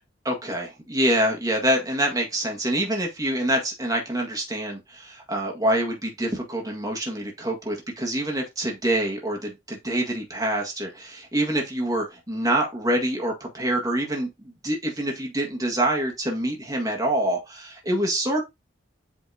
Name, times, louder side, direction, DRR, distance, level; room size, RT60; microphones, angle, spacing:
voice 1, 0.2-18.4, right 1 dB, 20° right, 1.7 m, -26 dB
8.1 x 4.3 x 2.7 m
head